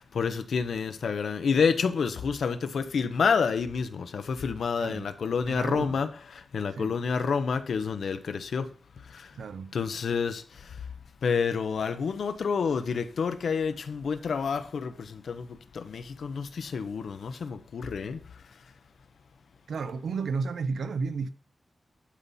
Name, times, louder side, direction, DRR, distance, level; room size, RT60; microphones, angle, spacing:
voice 1, 0.2-6.1 6.5-8.6 9.7-10.4 11.2-14.9 15.3-15.4 15.9-18.2, left 5 dB, 70° left, 0.9 m, -28 dB
voice 2, 4.8-5.1 5.5-6.0 6.7-7.0 9.3-9.7 19.7-21.3, right 4 dB, 75° right, 0.8 m, -32 dB
11.5 x 4.2 x 5.6 m
wide cardioid pair, 165°, 0 cm